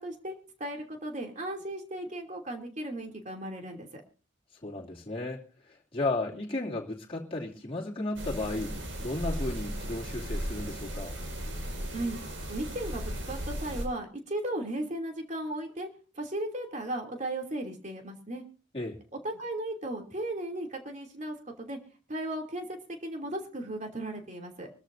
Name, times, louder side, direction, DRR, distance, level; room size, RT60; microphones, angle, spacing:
voice 1, 0.0-4.0 11.9-12.2 12.5-15.9 16.1-18.4 19.2-21.8 22.1-24.7, right 1 dB, 40° right, 3 dB, 2.8 m, -36 dB
voice 2, 4.6-11.2 18.7-19.0, left 2 dB, 30° left, -4 dB, 2.6 m, -34 dB
sound 1, 8.2-13.9, equal, 85° right, 5.5 m, -36 dB
25.0 x 13.0 x 2.6 m, 0.37 s
head